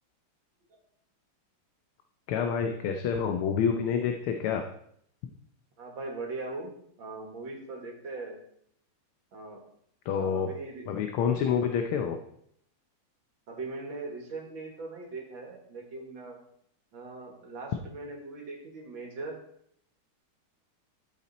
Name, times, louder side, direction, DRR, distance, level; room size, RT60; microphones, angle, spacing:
voice 1, 2.3-4.7 10.0-10.5 10.9-12.2, left 7 dB, 75° left, 6 dB, 1.6 m, -28 dB
voice 2, 5.8-8.4 9.3-9.6 10.2-10.9 11.5-11.6 13.5-16.4 16.9-19.4, right 3 dB, 60° right, 2 dB, 2.6 m, -40 dB
12.0 x 7.3 x 4.1 m, 0.69 s
omnidirectional pair, 2.4 m